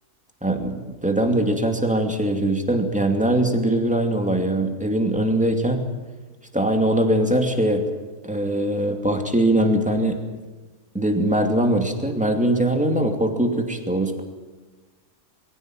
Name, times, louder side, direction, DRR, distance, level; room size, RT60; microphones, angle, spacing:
voice 1, 0.4-5.9 6.5-7.8 8.2-10.2 10.9-14.2, right 1 dB, 5° right, 4 dB, 2.5 m, -21 dB
23.5 x 16.0 x 9.1 m, 1.3 s
omnidirectional pair, 1.5 m